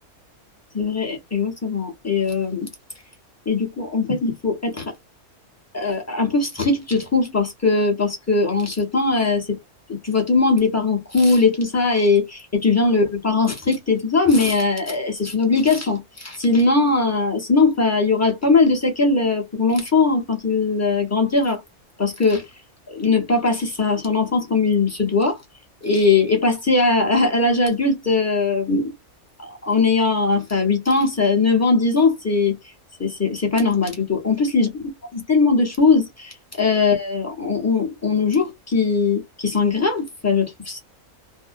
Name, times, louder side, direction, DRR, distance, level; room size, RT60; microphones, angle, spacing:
voice 1, 0.7-2.7 3.5-4.9 5.7-9.6 9.9-21.6 22.0-22.4 22.9-25.4 25.8-28.9 29.6-32.6 33.0-40.8, left 3 dB, 15° left, 0.6 m, -20 dB
2.7 x 2.0 x 2.5 m
omnidirectional pair, 1.6 m